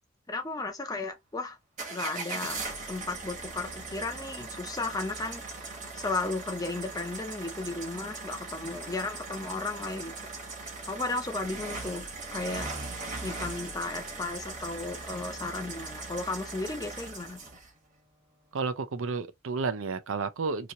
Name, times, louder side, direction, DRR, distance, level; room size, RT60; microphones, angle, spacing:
voice 1, 0.3-1.6 1.9-2.6 2.9-5.4 6.0-10.1 10.9-12.7 13.2-17.4, left 3 dB, 20° left, 0.6 m, -34 dB
sound 1, 1.8-17.7, right 3 dB, 35° right, 1.2 m, -39 dB
voice 2, 18.5-20.7, right 4 dB, 75° right, 0.6 m, -31 dB
3.0 x 2.9 x 2.5 m
head